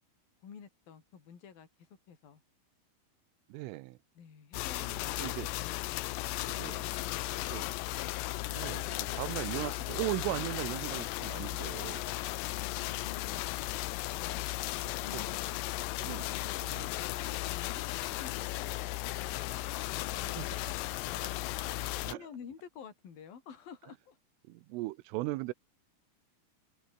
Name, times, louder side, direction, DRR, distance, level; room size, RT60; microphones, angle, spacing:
voice 1, 0.4-2.4 4.2-6.2 6.6-7.6 12.5-13.5 14.2-14.7 15.0-15.6 16.3-21.3 21.9-24.2, left 7 dB, 45° left, 5.5 m, -52 dB
voice 2, 3.5-4.0 5.2-5.5 6.5-6.9 7.5-7.7 8.5-12.1 14.8-15.2 16.0-16.3 16.6-16.9 20.1-20.7 22.0-22.3 24.4-25.5, right 20 dB, 80° right, 3.3 m, -38 dB
sound 1, 4.5-22.1, left 18 dB, 80° left, 2.6 m, -36 dB
open air
omnidirectional pair, 6.0 m